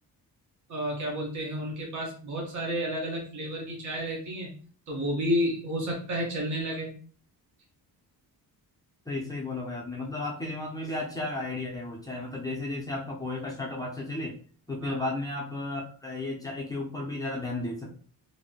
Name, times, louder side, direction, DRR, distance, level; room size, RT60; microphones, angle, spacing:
voice 1, 0.7-4.5 4.9-6.9 14.8-15.1, equal, 45° right, -1 dB, 0.9 m, -31 dB
voice 2, 9.1-14.4 14.7-17.9, left 2 dB, 10° left, -4 dB, 0.5 m, -34 dB
2.9 x 2.6 x 2.7 m, 0.42 s
wide cardioid pair, 175°, 39 cm